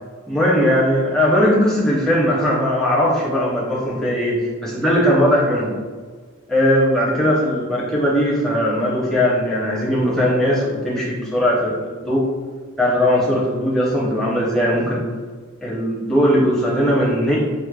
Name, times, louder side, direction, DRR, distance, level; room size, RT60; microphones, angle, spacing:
voice 1, 0.3-5.7 6.5-12.2 12.8-15.0 15.6-17.4, equal, ahead, -6 dB, 0.7 m, -19 dB
6.2 x 2.1 x 2.2 m, 1.5 s
head